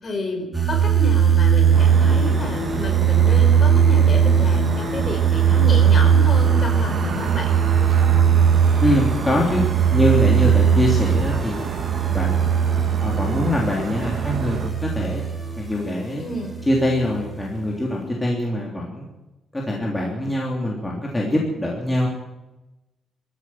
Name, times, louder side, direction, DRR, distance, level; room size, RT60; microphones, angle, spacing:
voice 1, 0.0-7.6 16.2-16.6, left 2 dB, 35° left, 3 dB, 5.1 m, -30 dB
sound 1, 0.5-15.8 16.3-17.4, right 7 dB, 5° right, 4.1 m, -19 dB
sound 2, 1.7-14.7, right 6 dB, 60° right, 2.1 m, -31 dB
voice 2, 8.8-9.6 9.9-11.8 12.1-12.5 13.0-15.2 15.6-16.3 16.7-19.0 19.5-22.1, left 1 dB, 10° left, -2 dB, 3.3 m, -23 dB
24.0 x 14.5 x 7.8 m, 1.0 s
cardioid pair, 160°, 0 cm